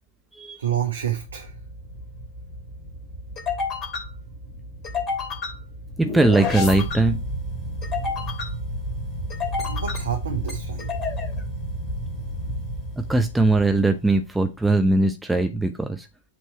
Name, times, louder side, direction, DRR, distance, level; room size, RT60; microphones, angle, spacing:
voice 1, 0.6-1.5 9.6-10.9, right 10 dB, 65° right, 1.0 m, -28 dB
sound 1, 1.0-13.8, left 2 dB, 25° left, 2.6 m, -30 dB
voice 2, 6.0-7.2 13.1-16.1, right 2 dB, 5° right, 0.5 m, -20 dB
8.0 x 3.1 x 4.4 m
figure-of-eight pair, 100°, 0 cm